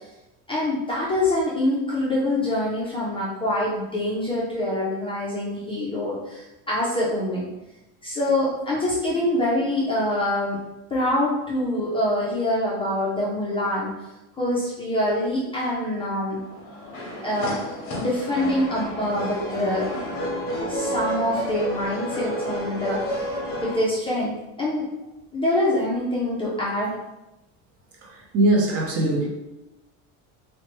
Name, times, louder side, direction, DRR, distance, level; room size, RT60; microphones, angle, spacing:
voice 1, 0.5-7.5 8.0-10.6 10.9-13.9 14.4-16.4 17.2-20.0 20.7-24.3 24.6-24.9 25.3-26.9, left 1 dB, 15° left, -6 dB, 0.4 m, -25 dB
sound 1, 16.4-23.8, equal, 40° left, 0.7 m, -30 dB
voice 2, 28.0-29.3, right 1 dB, 40° right, -1 dB, 0.6 m, -21 dB
2.9 x 2.1 x 3.0 m, 0.95 s
cardioid pair, 155°, 36 cm